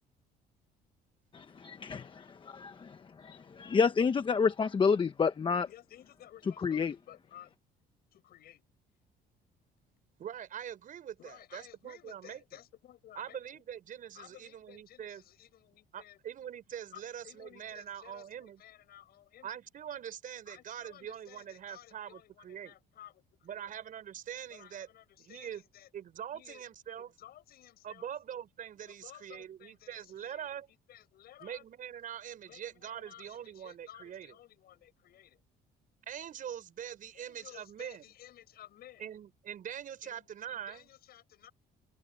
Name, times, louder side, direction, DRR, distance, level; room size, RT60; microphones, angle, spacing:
voice 1, 1.3-5.7 6.6-6.9, left 5 dB, 30° left, 1.0 m, -29 dB
voice 2, 5.7-7.5 8.1-8.6 11.2-13.6 14.1-16.2 16.9-19.5 20.5-23.7 24.5-25.9 26.3-26.6 27.2-28.1 28.9-30.6 30.9-31.6 32.4-35.4 37.1-39.1 40.0-40.2 40.5-41.5, left 12 dB, 65° left, 7.8 m, -55 dB
voice 3, 10.2-12.6 13.1-15.2 15.9-18.6 19.4-22.7 23.4-24.9 25.2-25.7 25.9-27.1 27.8-30.7 31.4-34.4 36.1-38.1 39.0-40.9, right 9 dB, 55° right, 5.5 m, -43 dB
cardioid pair, 110°, 17 cm